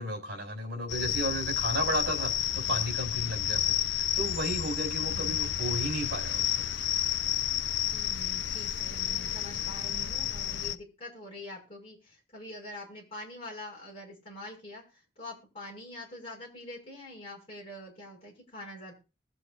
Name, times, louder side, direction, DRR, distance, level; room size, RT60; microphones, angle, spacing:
voice 1, 0.0-3.6 3.9-6.5, equal, 55° right, 4.4 m, -33 dB
sound 1, 0.9-10.8, left 11 dB, 75° left, 0.6 m, -31 dB
voice 2, 5.0-5.4 7.9-14.8 15.2-18.9, left 1 dB, 30° left, 6.1 m, -45 dB
21.5 x 7.8 x 2.5 m
head